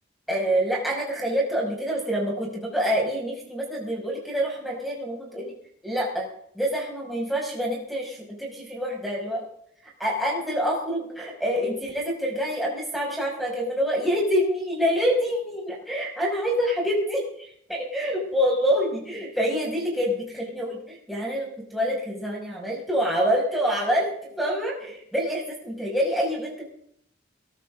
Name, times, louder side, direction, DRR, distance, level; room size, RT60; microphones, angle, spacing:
voice 1, 0.3-5.5 5.8-6.3 6.5-9.4 10.0-26.6, equal, ahead, -4 dB, 6.0 m, -26 dB
22.5 x 14.0 x 3.8 m, 0.67 s
head